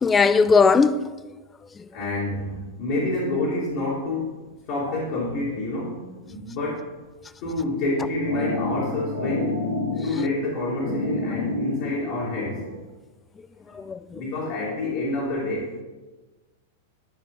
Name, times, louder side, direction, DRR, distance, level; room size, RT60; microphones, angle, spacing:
voice 1, 0.0-1.0 13.7-14.2, left 4 dB, 20° left, 0.4 m, -18 dB
voice 2, 1.9-4.4 4.7-6.9 7.4-9.7 10.0-12.6 13.7-13.8 14.1-15.7, left 2 dB, 55° left, 2.8 m, -28 dB
sound 1, 7.8-12.7, left 2 dB, 85° left, 1.7 m, -29 dB
12.5 x 4.7 x 3.8 m
hypercardioid pair, 100°, 0 cm